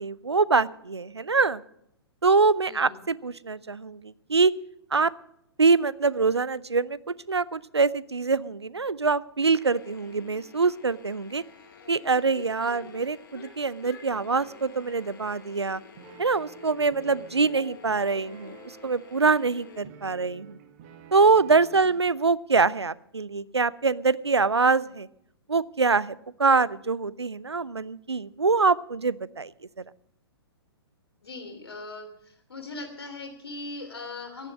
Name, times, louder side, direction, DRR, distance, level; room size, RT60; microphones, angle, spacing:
voice 1, 0.0-1.6 2.2-4.0 4.3-4.5 4.9-5.1 5.6-7.0 7.3-11.4 11.9-15.8 16.2-18.6 18.8-20.6 21.1-25.1 25.5-26.1 26.4-29.5, right 4 dB, 80° right, 21 dB, 0.6 m, -24 dB
voice 2, 2.6-3.0 12.6-12.9 17.0-17.2 19.8-19.9 21.7-21.9 26.5-26.6 31.2-32.1 32.5-34.5, left 3 dB, 70° left, 4 dB, 3.0 m, -40 dB
sound 1, 9.5-19.8, left 7 dB, 55° left, 3.3 m, -49 dB
sound 2, 14.3-22.0, right 8 dB, 35° right, 1.6 m, -51 dB
16.0 x 11.0 x 6.2 m, 0.74 s
figure-of-eight pair, 115°, 14 cm